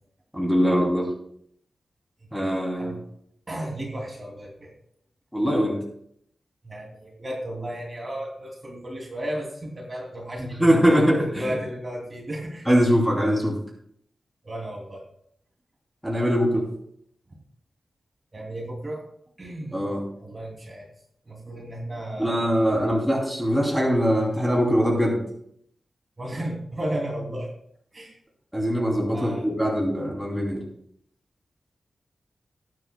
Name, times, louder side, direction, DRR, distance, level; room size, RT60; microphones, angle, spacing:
voice 1, 0.3-1.1 2.3-3.0 5.3-5.8 10.6-11.5 12.6-13.6 16.0-16.6 19.7-20.0 22.2-25.2 28.5-30.6, equal, ahead, -2 dB, 3.0 m, -22 dB
voice 2, 3.5-4.7 6.6-10.8 11.3-12.7 14.4-15.0 18.3-19.0 19.4-19.8 20.2-20.9 21.3-23.1 26.2-27.5 27.9-28.2 29.1-29.5, right 1 dB, 25° right, -2 dB, 2.6 m, -34 dB
20.0 x 9.4 x 2.2 m, 0.69 s
wide cardioid pair, 145°, 0 cm